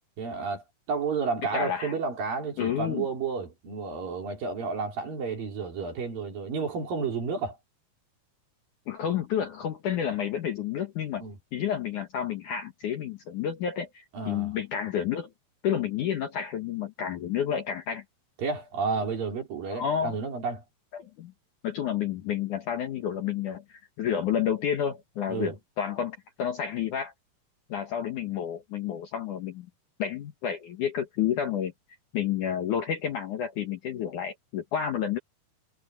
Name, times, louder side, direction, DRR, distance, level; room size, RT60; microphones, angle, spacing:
voice 1, 0.2-7.6 11.2-11.4 14.1-14.5 18.4-20.6 25.3-25.6, right 5 dB, 55° right, 5.4 m, -31 dB
voice 2, 1.5-1.9 2.6-3.1 8.9-11.2 11.5-15.3 15.6-18.0 19.7-20.2 20.9-21.3 21.6-27.1 27.7-29.7 30.0-31.7 32.1-35.2, left 9 dB, 60° left, 2.3 m, -30 dB
omnidirectional pair, 5.0 m